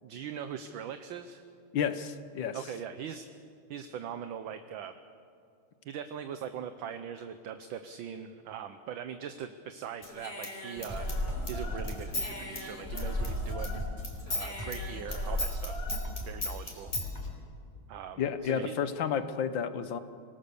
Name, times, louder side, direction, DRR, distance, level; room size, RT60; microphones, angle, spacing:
voice 1, 0.0-1.4 2.5-3.3 3.7-5.0 5.8-11.1 11.5-13.7 14.3-15.8 16.3-16.9 17.9-18.8, right 8 dB, 70° right, 9 dB, 1.5 m, -41 dB
voice 2, 1.7-2.6 18.2-20.0, left 7 dB, 65° left, 11 dB, 1.7 m, -31 dB
Human voice / Scissors, 10.0-13.8 14.0-17.1, left 1 dB, 25° left, 3.7 m, -35 dB
sound 1, 10.8-15.4 15.7-17.3, left 2 dB, 10° right, 4.0 m, -42 dB
27.0 x 18.0 x 7.0 m, 2.5 s
omnidirectional pair, 2.4 m